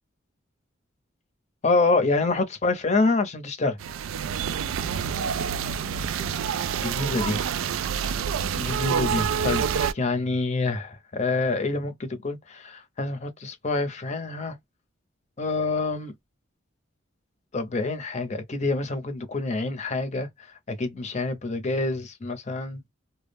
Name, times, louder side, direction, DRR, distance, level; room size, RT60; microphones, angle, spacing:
voice 1, 1.6-3.8 6.8-7.4 8.0-8.1 8.6-14.5 15.4-16.1 17.5-20.3 20.7-22.9, left 3 dB, 35° left, 0.6 m, -27 dB
sound 1, 3.8-9.9, right 7 dB, 80° right, 0.3 m, -27 dB
2.2 x 2.0 x 3.3 m
head